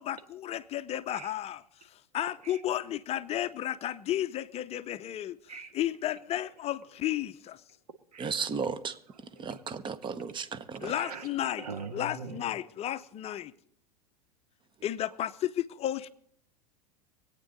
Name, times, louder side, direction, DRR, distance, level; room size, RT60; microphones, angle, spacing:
voice 1, 0.0-1.6 2.1-5.4 5.7-7.6 10.8-11.6 11.9-13.5 14.8-16.1, left 12 dB, 35° left, 0.6 m, -33 dB
voice 2, 8.2-9.0 9.4-10.9, right 5 dB, 25° right, 0.9 m, -34 dB
voice 3, 9.1-9.9 10.8-12.5, right 4 dB, 80° right, 1.4 m, -43 dB
24.0 x 9.0 x 4.0 m
hypercardioid pair, 90°, 20 cm